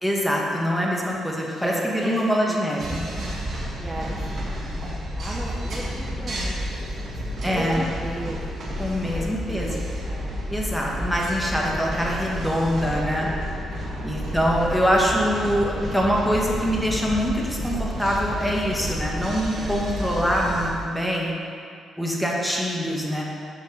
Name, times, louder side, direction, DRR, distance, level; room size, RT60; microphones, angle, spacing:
voice 1, 0.0-3.0 7.4-7.8 8.8-9.8 10.5-13.3 14.0-21.3 22.0-23.2, equal, 5° left, -2 dB, 1.2 m, -24 dB
voice 2, 1.4-3.0 3.8-4.4 5.2-8.4 8.7-10.4 12.8-13.4 13.7-14.1, right 1 dB, 20° right, -4 dB, 0.8 m, -35 dB
sound 1, 2.8-20.7, equal, 55° right, 1.5 m, -31 dB
6.6 x 4.7 x 5.4 m, 2.4 s
cardioid pair, 90°, 0 cm